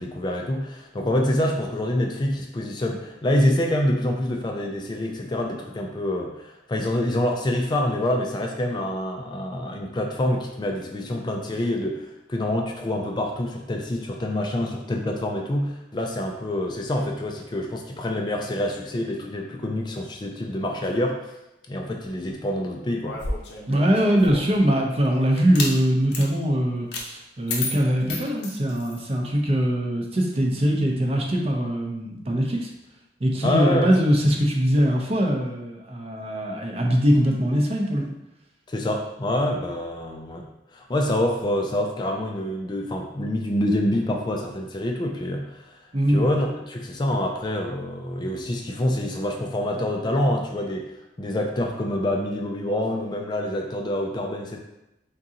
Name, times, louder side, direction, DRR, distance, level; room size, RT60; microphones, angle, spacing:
voice 1, 0.0-21.2 21.7-23.2 33.4-33.9 38.7-40.5 40.7-45.8 46.1-50.9 51.2-54.6, left 1 dB, 25° left, 2 dB, 0.4 m, -26 dB
sound 1, 23.0-24.6 25.4-25.7 26.1-26.3 26.9-27.1 27.5-29.0, left 3 dB, 75° left, 0.8 m, -31 dB
voice 2, 23.7-32.7 33.2-38.1 45.9-46.3, equal, 35° right, 0 dB, 0.6 m, -22 dB
3.7 x 3.7 x 2.8 m, 0.90 s
head